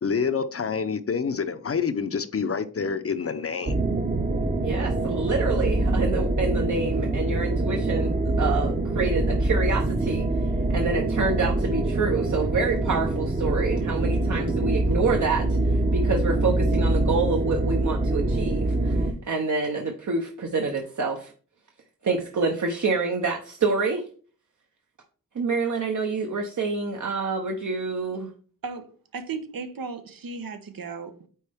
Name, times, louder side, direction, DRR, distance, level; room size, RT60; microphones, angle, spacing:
voice 1, 0.0-3.8, left 6 dB, 45° left, 0.6 m, -27 dB
sound 1, 3.7-19.1, right 2 dB, 25° right, 0.8 m, -24 dB
voice 2, 4.6-10.4 10.7-21.3 22.0-24.0 25.3-28.3, right 4 dB, 60° right, 1.0 m, -27 dB
voice 3, 29.1-31.3, right 4 dB, 85° right, 1.1 m, -35 dB
9.0 x 4.3 x 3.5 m
wide cardioid pair, 100°, 34 cm